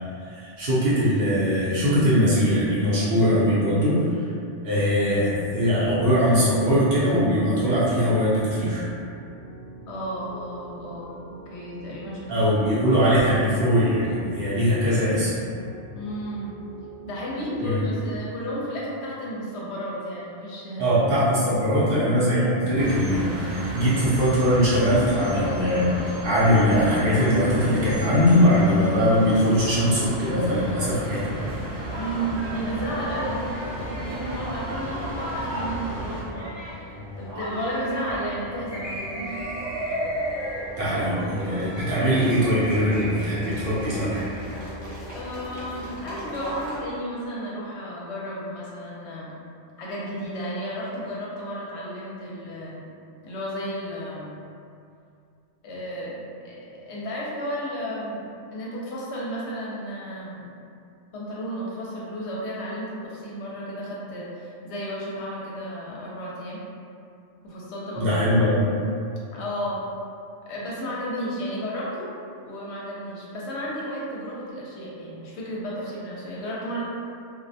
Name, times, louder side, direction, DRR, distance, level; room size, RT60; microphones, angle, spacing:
voice 1, 0.2-4.0 4.6-8.9 12.3-15.3 17.6-17.8 20.8-31.5 39.8-40.0 40.8-44.2 68.0-68.6, equal, 60° right, -10 dB, 0.8 m, -21 dB
Piano, 5.3-18.2, right 3 dB, 15° right, 0.5 m, -44 dB
voice 2, 9.9-13.1 15.9-16.5 17.0-21.0 32.0-39.5 45.1-49.3 49.8-52.8 53.2-54.4 55.6-56.2 56.4-60.5 61.1-66.6 67.4-68.3 69.3-69.8 70.4-72.1 72.4-76.8, equal, 70° left, -6 dB, 0.8 m, -33 dB
sound 1, 22.8-36.2, right 1 dB, 85° right, 1.0 m, -33 dB
sound 2, 27.8-46.8, equal, 25° left, 0.7 m, -35 dB
2.3 x 2.1 x 2.6 m, 2.5 s
omnidirectional pair, 1.2 m